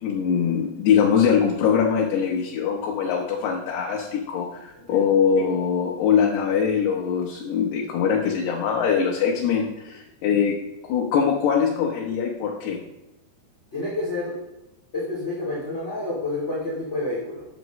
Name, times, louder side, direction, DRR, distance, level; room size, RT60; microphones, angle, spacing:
voice 1, 0.0-10.6 10.8-12.8, left 7 dB, 80° left, -1 dB, 3.0 m, -22 dB
voice 2, 13.7-14.3 14.9-17.4, left 2 dB, 20° left, -7 dB, 2.3 m, -29 dB
12.5 x 8.3 x 3.1 m, 0.93 s
omnidirectional pair, 4.8 m